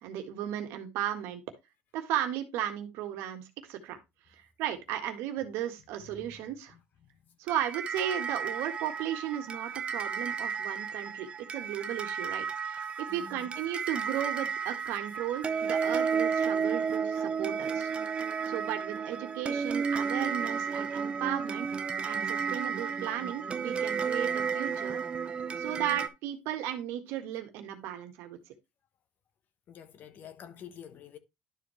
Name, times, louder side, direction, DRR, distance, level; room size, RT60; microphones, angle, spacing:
voice 1, 0.0-1.4 1.9-4.0 4.3-6.7 7.4-17.9 18.4-21.7 22.0-25.0 25.6-28.4, right 11 dB, 65° right, 1.7 m, -35 dB
sound 1, 7.5-26.1, right 6 dB, 25° right, 0.6 m, -32 dB
voice 2, 13.1-13.5 25.7-26.0 29.7-31.2, left 8 dB, 45° left, 1.0 m, -49 dB
11.5 x 4.6 x 3.2 m
cardioid pair, 135°, 4 cm